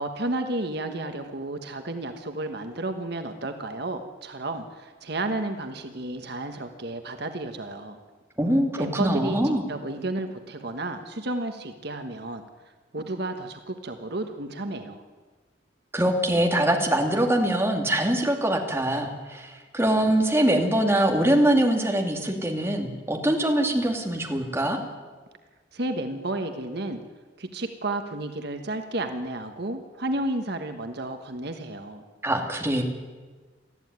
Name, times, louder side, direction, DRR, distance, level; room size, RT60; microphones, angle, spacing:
voice 1, 0.0-8.0 8.8-15.0 25.7-27.0 27.4-32.0, right 2 dB, 60° right, 7 dB, 1.4 m, -32 dB
voice 2, 8.4-9.6 15.9-24.8 32.2-32.8, right 1 dB, 15° right, 2 dB, 2.5 m, -23 dB
19.5 x 14.0 x 9.6 m, 1.4 s
head